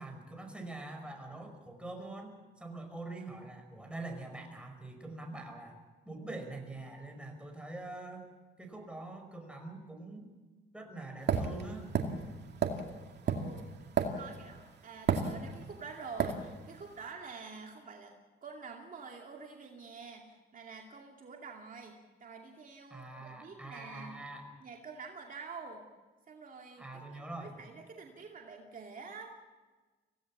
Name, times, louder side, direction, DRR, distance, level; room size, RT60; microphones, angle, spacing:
voice 1, 0.0-5.8 6.1-8.3 8.6-10.3 10.7-11.9 22.9-24.5 26.8-27.6, right 2 dB, 5° right, 3 dB, 5.2 m, -44 dB
sound 1, 11.3-14.6 15.1-15.8 16.2-16.4, right 6 dB, 60° right, 2.3 m, -31 dB
voice 2, 13.3-13.7 14.0-18.2 18.4-24.2 24.6-25.8 26.3-29.3, right 4 dB, 45° right, 1 dB, 2.5 m, -47 dB
24.5 x 17.0 x 7.3 m, 1.3 s
cardioid pair, 90°, 20 cm